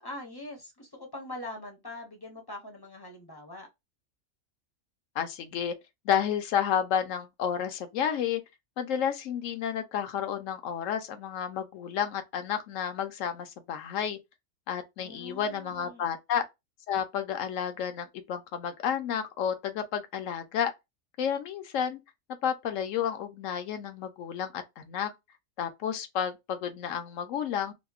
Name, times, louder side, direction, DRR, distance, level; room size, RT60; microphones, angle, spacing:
voice 1, 0.0-3.7 15.0-16.2, left 1 dB, 25° left, 0.5 m, -43 dB
voice 2, 5.2-5.7 6.0-8.4 8.8-14.2 14.7-16.4 16.9-20.7 21.2-22.0 22.4-25.1 25.6-27.7, left 8 dB, 75° left, 0.9 m, -31 dB
2.8 x 2.0 x 2.3 m
omnidirectional pair, 1.4 m